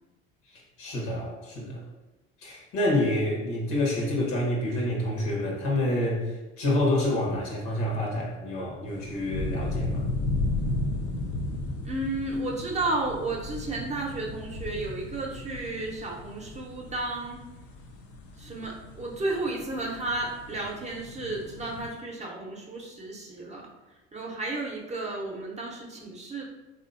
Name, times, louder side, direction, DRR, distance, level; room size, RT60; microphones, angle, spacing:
voice 1, 0.8-1.8 2.4-6.2 6.6-10.0, left 1 dB, 75° left, -3 dB, 1.2 m, -27 dB
sound 1, 8.9-21.9, left 2 dB, 55° left, 0.6 m, -34 dB
voice 2, 11.8-17.4 18.4-23.7 24.1-26.4, right 2 dB, 25° right, -2 dB, 0.7 m, -33 dB
3.2 x 2.8 x 2.5 m, 1.1 s
supercardioid pair, 80°, 29 cm